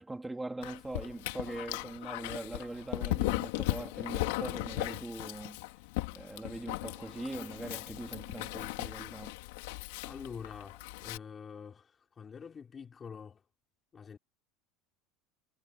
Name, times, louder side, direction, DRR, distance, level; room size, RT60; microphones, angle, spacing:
voice 1, 0.0-5.6 6.1-9.3, right 2 dB, 5° right, 3.2 m, -41 dB
Dog, 0.6-11.2, left 20 dB, 70° left, 3.7 m, -37 dB
voice 2, 10.0-13.4 13.9-14.2, left 6 dB, 20° left, 5.3 m, -46 dB
cardioid pair, 170°, 0 cm